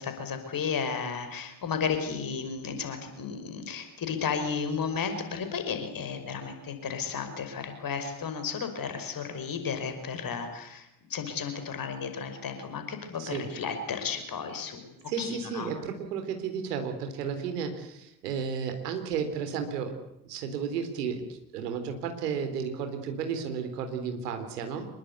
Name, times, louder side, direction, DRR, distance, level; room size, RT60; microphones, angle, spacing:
voice 1, 0.0-15.7, left 6 dB, 45° left, 8 dB, 5.6 m, -33 dB
voice 2, 15.1-20.0 20.3-21.2 21.5-24.9, right 6 dB, 75° right, 7 dB, 3.9 m, -33 dB
26.5 x 22.5 x 8.4 m, 0.82 s
figure-of-eight pair, 55°, 47 cm